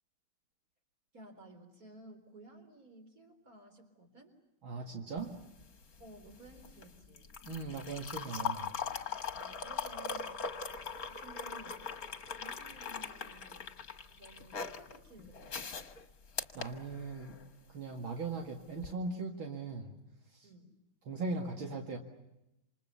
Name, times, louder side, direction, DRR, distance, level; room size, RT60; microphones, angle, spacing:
voice 1, 1.1-4.4 6.0-7.3 9.3-10.4 11.1-11.9 12.4-13.6 14.1-15.8 20.4-20.7, right 2 dB, 40° right, 5 dB, 4.4 m, -55 dB
voice 2, 4.6-5.4 7.5-8.7 16.5-17.4 17.7-20.0 20.3-20.5 21.0-22.0, right 3 dB, 70° right, 2 dB, 2.8 m, -39 dB
sound 1, 5.2-17.5 18.7-18.9, left 6 dB, 45° left, 1.9 m, -41 dB
28.5 x 27.0 x 6.9 m, 0.91 s
omnidirectional pair, 2.3 m